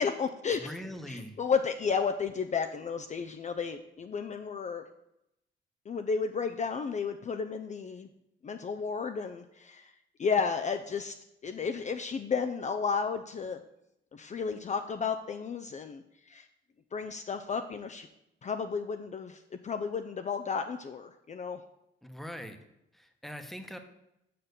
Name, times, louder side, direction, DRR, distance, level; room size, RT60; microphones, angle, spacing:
voice 1, 0.0-0.7 1.1-4.8 5.9-8.1 8.4-9.9 10.2-11.1 11.4-13.6 14.1-16.5 16.9-18.1 18.4-21.6, left 5 dB, 35° left, 7 dB, 0.5 m, -32 dB
voice 2, 0.5-1.4 22.0-22.6 22.9-23.8, equal, ahead, 6 dB, 1.1 m, -42 dB
6.7 x 5.6 x 6.7 m, 0.84 s
cardioid pair, 90°, 20 cm